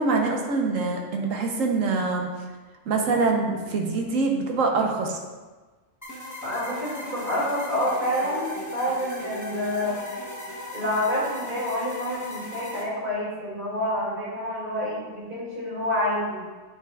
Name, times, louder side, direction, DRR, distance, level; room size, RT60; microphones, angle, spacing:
voice 1, 0.0-2.3 2.9-5.2, right 3 dB, 85° right, 2 dB, 1.3 m, -24 dB
sound 1, 6.0-12.8, left 1 dB, 15° left, 0.8 m, -37 dB
voice 2, 6.4-10.0 10.7-16.5, left 1 dB, 40° right, -6 dB, 2.6 m, -28 dB
9.3 x 6.0 x 2.4 m, 1.3 s
omnidirectional pair, 1.3 m